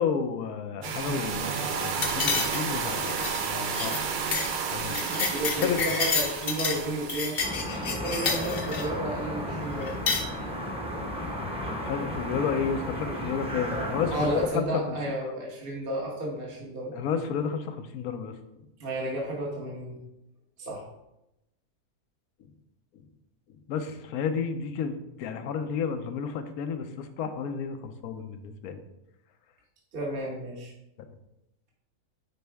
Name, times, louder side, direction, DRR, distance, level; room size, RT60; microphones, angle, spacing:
voice 1, 0.0-3.9 4.7-5.1 5.6-5.8 11.7-14.7 16.9-18.3 23.7-28.8, left 6 dB, 75° left, 9 dB, 1.1 m, -31 dB
sound 1, 0.8-7.4, right 6 dB, 80° right, 0.4 m, -31 dB
sound 2, 2.0-2.8 3.1-3.4 3.7-4.0 4.3-4.5 4.8-6.8 7.1-8.9 9.8-10.2, left 4 dB, 45° left, 0.9 m, -29 dB
voice 2, 4.9-7.4 7.8-10.0 14.1-16.9 18.8-20.0 20.6-20.8 29.9-30.7, right 1 dB, 40° right, -2 dB, 1.4 m, -32 dB
sound 3, 7.4-14.5, equal, 5° right, 0.9 m, -33 dB
9.5 x 4.2 x 3.4 m, 0.89 s
omnidirectional pair, 1.6 m